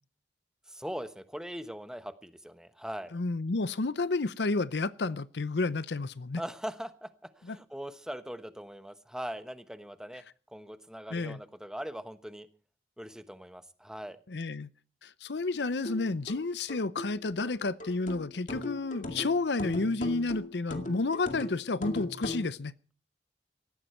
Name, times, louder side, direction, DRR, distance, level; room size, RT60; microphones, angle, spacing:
voice 1, 0.7-3.1 6.4-7.1 7.4-10.2 10.5-12.5 13.0-14.2, equal, 5° right, 1.1 m, -41 dB
voice 2, 3.1-6.4 7.4-7.6 11.1-11.4 14.3-14.7 15.0-22.7, left 3 dB, 75° left, 0.7 m, -31 dB
sound 1, 15.8-22.5, left 1 dB, 45° left, 2.2 m, -39 dB
18.0 x 14.5 x 4.4 m
head